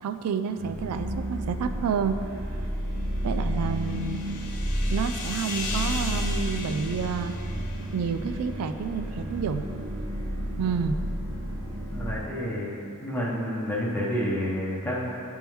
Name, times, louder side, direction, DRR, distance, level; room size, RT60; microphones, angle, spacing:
voice 1, 0.0-2.2 3.2-4.2 4.9-7.4 7.9-9.6 10.6-11.0, right 6 dB, 90° right, 9 dB, 0.3 m, -29 dB
sound 1, 0.6-12.2, equal, 45° right, 1.4 m, -31 dB
sound 2, 2.9-8.5, left 3 dB, 85° left, 0.7 m, -38 dB
voice 2, 11.9-12.7 13.0-15.1, equal, 10° left, -6 dB, 0.8 m, -29 dB
10.0 x 3.6 x 3.0 m, 2.6 s
head